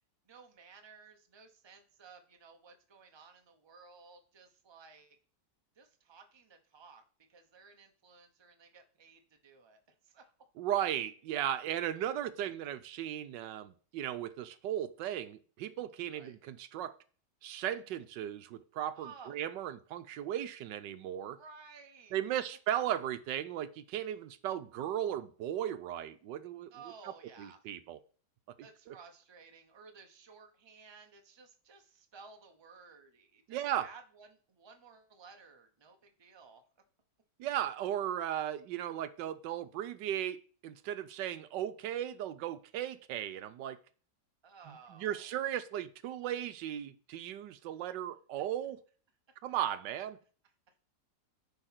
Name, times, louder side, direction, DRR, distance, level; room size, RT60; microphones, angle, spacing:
voice 1, 0.2-5.2 5.7-7.0 7.3-10.3 16.1-16.4 18.9-19.3 21.3-22.2 26.7-27.6 28.6-36.6 44.4-45.4 49.3-49.4 50.7-50.8, right 5 dB, 20° right, 0.8 m, -56 dB
voice 2, 10.6-17.0 17.4-21.4 22.1-26.7 27.4-28.0 28.9-29.0 33.5-33.9 37.4-43.8 44.7-48.8 49.4-50.2, right 11 dB, 85° right, 1.3 m, -36 dB
9.9 x 4.0 x 5.9 m
omnidirectional pair, 1.9 m